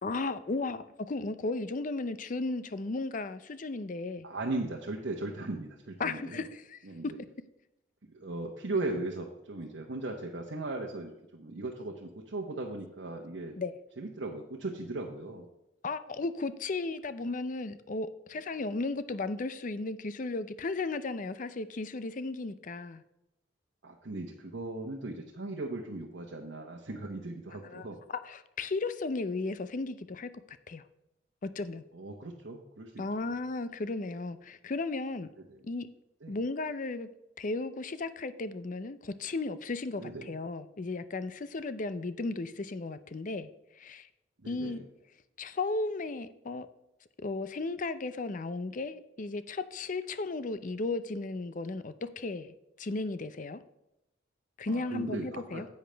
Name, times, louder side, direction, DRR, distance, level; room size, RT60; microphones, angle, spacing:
voice 1, 0.0-4.3 6.0-7.1 13.6-13.7 15.8-23.0 27.6-30.8 31.4-31.8 33.0-35.3 35.6-35.9 36.3-37.1 37.4-43.5 43.8-44.1 44.5-44.8 45.4-46.7 47.2-53.6 54.6-55.7, left 3 dB, 45° left, 13 dB, 0.5 m, -35 dB
voice 2, 4.2-6.5 6.8-7.0 8.1-13.6 14.0-15.5 23.8-28.0 31.9-33.0 35.5-35.6 36.2-36.4 40.0-40.3 44.4-44.8 54.7-55.6, right 2 dB, 70° right, 0 dB, 1.0 m, -38 dB
10.0 x 8.0 x 3.4 m, 0.88 s
head